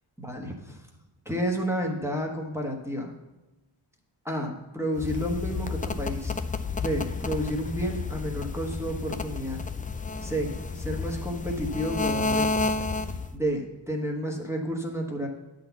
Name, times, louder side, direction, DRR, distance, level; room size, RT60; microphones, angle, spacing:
voice 1, 0.2-0.8 1.3-3.1 4.2-6.3 6.8-9.6 10.2-12.7 13.3-15.3, equal, 5° right, 0 dB, 1.0 m, -31 dB
sound 1, 5.0-13.3, left 4 dB, 20° left, 0.3 m, -31 dB
9.5 x 4.0 x 7.0 m, 1.0 s
wide cardioid pair, 115°, 48 cm